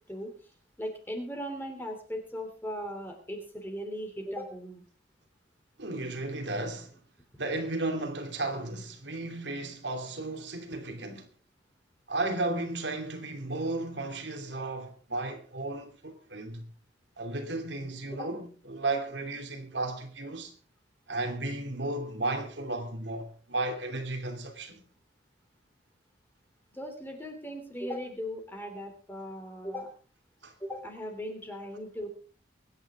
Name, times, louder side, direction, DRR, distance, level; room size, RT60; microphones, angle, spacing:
voice 1, 0.8-4.8 18.2-18.3 26.7-29.9 30.6-32.1, equal, 10° left, 3.1 m, -38 dB
voice 2, 5.8-6.9 7.4-11.3 12.1-16.7 17.2-20.5 21.1-24.8 30.4-30.5, right 2 dB, 70° right, 2.8 m, -34 dB
24.5 x 10.0 x 3.6 m
head